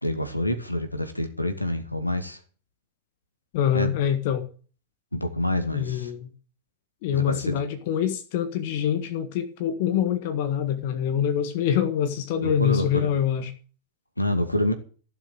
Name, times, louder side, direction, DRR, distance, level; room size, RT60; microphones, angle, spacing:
voice 1, 0.0-2.4 3.7-3.9 5.1-6.1 7.1-7.6 12.4-13.1 14.2-14.7, left 1 dB, 85° left, 2.2 m, -27 dB
voice 2, 3.5-4.5 5.7-6.3 7.0-13.5, left 9 dB, 50° left, 1.6 m, -25 dB
16.0 x 7.3 x 8.9 m
figure-of-eight pair, 90°, 0 cm